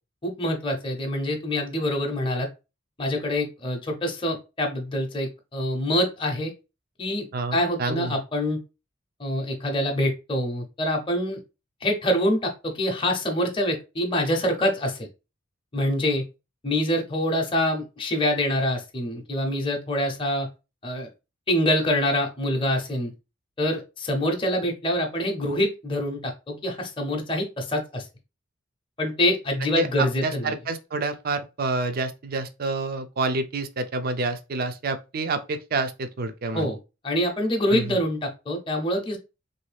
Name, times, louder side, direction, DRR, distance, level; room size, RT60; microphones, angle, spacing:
voice 1, 0.2-2.5 3.0-6.5 7.0-8.6 9.2-11.4 11.8-15.1 15.7-16.2 16.6-20.5 20.8-21.1 21.5-23.1 23.6-28.1 29.0-30.5 36.5-36.8 37.0-39.2, left 1 dB, 25° left, 0.6 m, -25 dB
voice 2, 7.3-8.2 29.8-36.7 37.7-38.0, right 3 dB, 50° right, 0.4 m, -28 dB
3.1 x 2.6 x 3.3 m
head